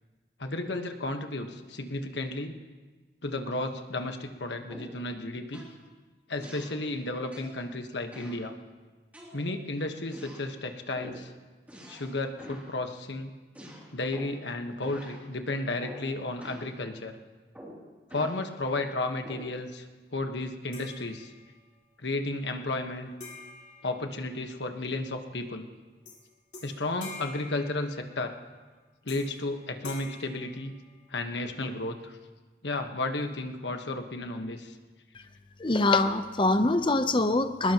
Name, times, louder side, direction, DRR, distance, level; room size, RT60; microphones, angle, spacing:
voice 1, 0.4-2.6 3.2-5.6 6.3-8.5 9.3-11.3 11.9-13.3 13.9-17.2 18.1-19.9 20.1-21.3 22.0-23.1 23.8-25.6 26.6-28.3 29.0-30.7 31.1-32.2 32.6-34.8, left 2 dB, 80° left, 5 dB, 1.4 m, -33 dB
sound 1, 4.7-5.1 5.5-5.8 6.4-6.8 7.3-7.6 8.1-8.5 9.1-9.7 10.1-10.5 11.0-11.3 11.7-12.1 12.4-12.7 13.5-14.5 14.8-15.2 15.8-16.1 16.4-16.7 17.5-18.4 19.2-19.6, equal, 10° right, 3.0 m, -46 dB
sound 2, 20.7-21.7 23.2-24.8 26.1-26.2 26.5-28.4 29.1-29.5 29.8-31.3, left 3 dB, 45° left, 4.1 m, -47 dB
voice 2, 35.6-37.7, left 2 dB, 30° left, 9 dB, 0.8 m, -24 dB
22.5 x 20.0 x 3.0 m, 1.3 s
head